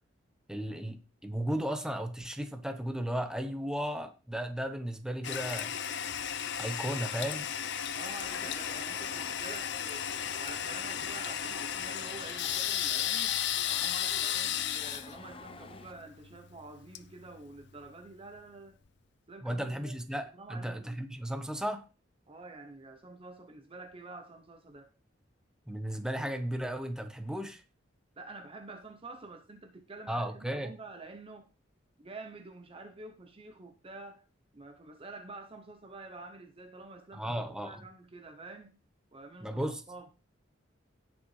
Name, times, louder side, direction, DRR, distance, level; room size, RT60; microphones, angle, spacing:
voice 1, 0.5-5.7 6.6-7.5 19.4-21.8 25.7-27.6 30.1-30.7 37.1-37.8 39.4-39.8, right 1 dB, 5° right, 1.0 m, -35 dB
Toilet flush, 5.2-17.9, left 10 dB, 65° left, 0.7 m, -34 dB
voice 2, 7.9-10.1 10.4-13.4 13.7-18.8 19.3-20.0 20.3-21.0 22.3-24.9 28.2-31.5 32.0-34.2 34.5-38.7 39.1-39.6 39.9-40.1, right 3 dB, 30° right, 0.7 m, -48 dB
sound 1, 8.3-15.9, left 3 dB, 30° left, 0.8 m, -50 dB
17.5 x 6.3 x 3.2 m
head